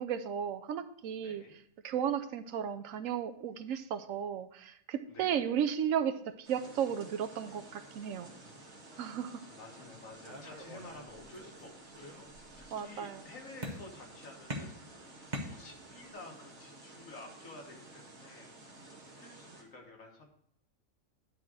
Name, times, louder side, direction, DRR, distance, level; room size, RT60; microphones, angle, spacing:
voice 1, 0.0-1.4 1.8-8.3 9.0-9.4 12.7-13.2, right 8 dB, 80° right, 10 dB, 1.0 m, -34 dB
voice 2, 1.2-1.6 5.1-5.5 8.0-8.8 9.5-20.3, left 2 dB, 75° left, 2 dB, 1.7 m, -52 dB
sound 1, 6.4-19.6, right 2 dB, 55° right, 1.7 m, -53 dB
sound 2, 10.2-11.6 11.9-12.7 13.6-14.1 14.5-16.1, right 1 dB, 35° right, 1.1 m, -43 dB
10.5 x 3.5 x 6.1 m, 0.72 s
omnidirectional pair, 1.4 m